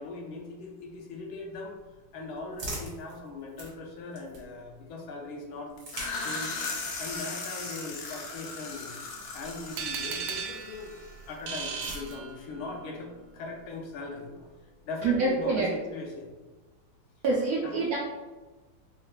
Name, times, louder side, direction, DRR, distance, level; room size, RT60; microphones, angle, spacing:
voice 1, 0.0-1.8 2.1-5.7 6.2-9.0 9.3-10.9 11.3-16.3 17.6-17.8, left 3 dB, 90° left, 0 dB, 1.6 m, -40 dB
sound 1, 1.7-4.8 5.6-10.2 11.2-12.7, right 1 dB, 55° right, 1.5 m, -45 dB
sound 2, 5.8-11.4, left 3 dB, 65° left, 1.0 m, -38 dB
sound 3, 9.8-12.8, right 6 dB, 85° right, 1.4 m, -36 dB
voice 2, 15.0-15.7 17.2-18.0, right 3 dB, 70° right, -4 dB, 0.9 m, -26 dB
4.3 x 3.2 x 2.4 m, 1.2 s
omnidirectional pair, 2.2 m